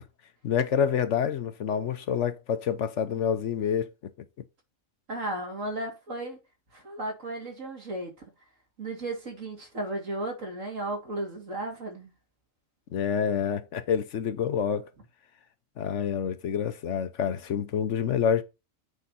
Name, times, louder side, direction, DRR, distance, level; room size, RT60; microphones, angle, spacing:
voice 1, 0.4-3.9 12.9-14.9 15.8-18.4, left 8 dB, 65° left, 1.1 m, -27 dB
voice 2, 5.1-6.4 6.7-8.1 8.8-12.1, right 1 dB, 70° right, 2.9 m, -34 dB
8.5 x 4.9 x 4.1 m
omnidirectional pair, 1.4 m